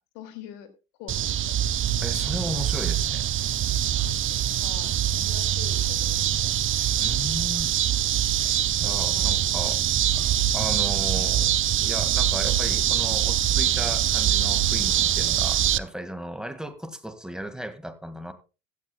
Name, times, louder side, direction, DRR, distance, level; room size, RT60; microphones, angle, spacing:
voice 1, 0.1-0.7 1.0-1.6 4.6-6.5 9.1-9.4, left 9 dB, 60° left, 2.4 m, -44 dB
sound 1, 1.1-15.8, right 11 dB, 35° right, 0.7 m, -24 dB
voice 2, 2.0-3.3 7.0-7.8 8.8-18.3, equal, ahead, 1.8 m, -36 dB
16.0 x 13.0 x 2.3 m
figure-of-eight pair, 60°, 37 cm